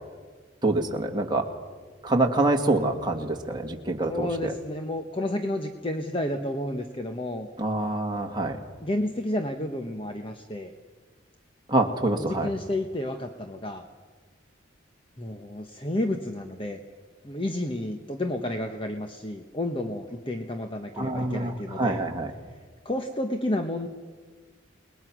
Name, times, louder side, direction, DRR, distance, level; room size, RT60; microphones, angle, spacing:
voice 1, 0.6-1.4 2.0-4.5 7.6-8.6 11.7-12.5 21.0-22.3, right 2 dB, 20° right, 1 dB, 2.0 m, -26 dB
voice 2, 4.1-7.5 8.8-10.7 12.2-13.8 15.2-16.8 17.2-22.0 22.5-22.6 22.8-23.9, left 1 dB, 25° left, 5 dB, 1.1 m, -31 dB
29.5 x 20.5 x 6.2 m, 1.5 s
head